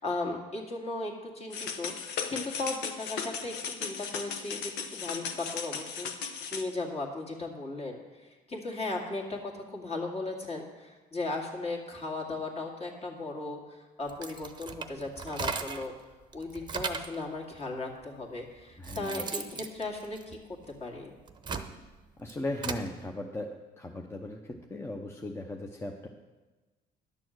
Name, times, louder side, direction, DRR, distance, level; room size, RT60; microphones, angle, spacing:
voice 1, 0.0-15.9 16.3-20.4 20.8-21.2, left 2 dB, 40° left, 0 dB, 2.1 m, -37 dB
sound 1, 1.5-6.6, left 6 dB, 90° left, 1.0 m, -36 dB
sound 2, 14.1-15.9 16.3-17.2 18.0-18.1 18.6-20.7 21.2-22.9, right 5 dB, 25° right, 0.8 m, -37 dB
voice 2, 18.8-19.2 22.2-26.1, left 1 dB, 15° left, 2 dB, 0.8 m, -37 dB
11.0 x 6.9 x 6.4 m, 1.2 s
cardioid pair, 110°, 17 cm